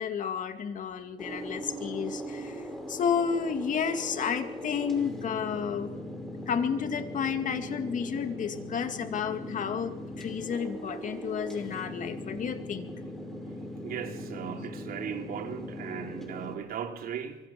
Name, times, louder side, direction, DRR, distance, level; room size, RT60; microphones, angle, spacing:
voice 1, 0.0-5.9 6.5-12.9, left 7 dB, 50° left, 2.3 m, -31 dB
sound 1, 1.2-16.6, equal, ahead, 5.5 m, -40 dB
voice 2, 13.8-17.4, right 8 dB, 60° right, 3.2 m, -37 dB
24.5 x 24.0 x 6.0 m
cardioid pair, 110°, 17 cm